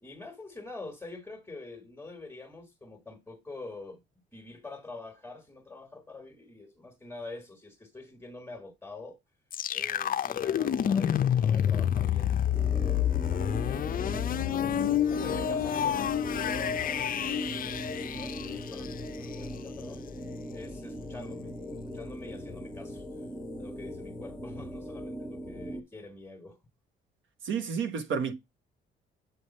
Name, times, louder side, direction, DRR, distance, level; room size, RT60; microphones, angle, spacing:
voice 1, 0.0-4.0 4.3-9.2 9.7-23.3 23.6-26.6, left 3 dB, 10° left, 1.6 m, -46 dB
sound 1, 9.5-19.3, left 9 dB, 45° left, 0.5 m, -28 dB
sound 2, 12.5-25.8, equal, 15° right, 1.6 m, -39 dB
voice 2, 27.4-28.3, right 6 dB, 75° right, 1.3 m, -30 dB
8.2 x 3.4 x 4.1 m
cardioid pair, 90°, 20 cm